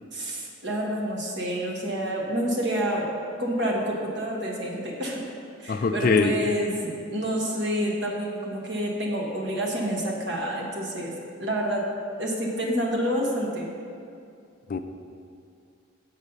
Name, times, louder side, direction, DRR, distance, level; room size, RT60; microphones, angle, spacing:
voice 1, 0.1-3.1 3.4-5.2 5.6-11.8 12.2-13.7, equal, 55° right, -2 dB, 1.2 m, -28 dB
voice 2, 5.7-6.3 14.7-14.8, left 4 dB, 45° left, 8 dB, 0.3 m, -22 dB
7.2 x 4.2 x 6.6 m, 2.4 s
head